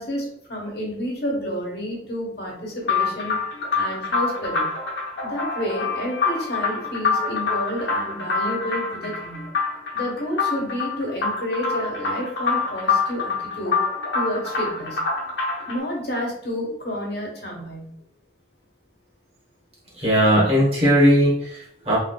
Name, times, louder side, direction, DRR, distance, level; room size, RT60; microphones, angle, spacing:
voice 1, 0.0-3.4 3.7-4.7 5.2-9.5 9.9-13.8 14.1-15.0 15.6-17.9, equal, 60° left, -2 dB, 1.2 m, -30 dB
sound 1, 2.8-15.8, left 4 dB, 85° left, 0.9 m, -26 dB
voice 2, 20.0-22.0, equal, 35° right, -6 dB, 1.3 m, -18 dB
3.3 x 3.2 x 2.3 m, 0.71 s
head